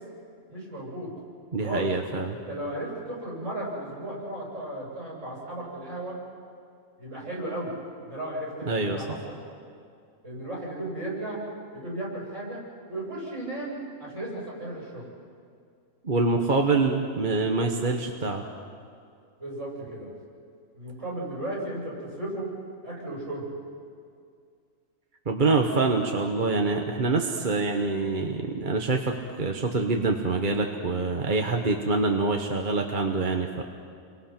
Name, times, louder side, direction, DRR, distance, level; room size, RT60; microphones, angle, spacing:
voice 1, 0.5-1.1 1.6-1.9 2.3-6.2 7.0-7.7 8.0-9.4 10.2-11.4 11.7-12.6 12.9-15.1 19.4-20.1 20.7-22.5 22.8-23.5, right 1 dB, 55° right, -5 dB, 8.1 m, -35 dB
voice 2, 1.5-2.4 8.7-9.0 16.0-18.4 25.3-33.6, right 3 dB, 35° right, 2 dB, 1.3 m, -25 dB
29.5 x 23.5 x 6.0 m, 2.3 s
omnidirectional pair, 1.6 m